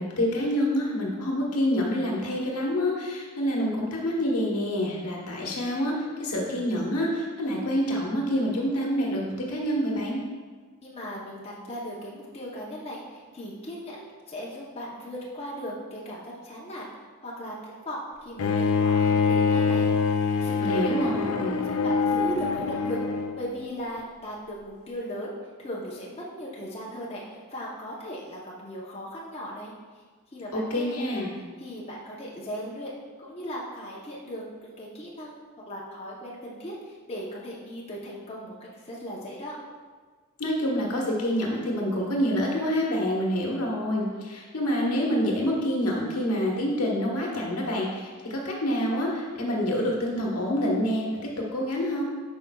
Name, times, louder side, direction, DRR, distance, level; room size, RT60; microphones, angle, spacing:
voice 1, 0.0-10.2 20.6-21.6 30.5-31.3 40.4-52.0, equal, 90° left, -2 dB, 1.2 m, -27 dB
voice 2, 10.8-16.9 17.2-17.6 17.8-21.1 21.4-23.0 23.3-25.3 25.6-29.7 30.3-31.2 31.6-32.9 33.2-39.6, equal, 30° left, -5 dB, 0.8 m, -38 dB
Bowed string instrument, 18.4-23.4, left 4 dB, 70° left, 0.4 m, -24 dB
8.3 x 5.5 x 2.3 m, 1.5 s
head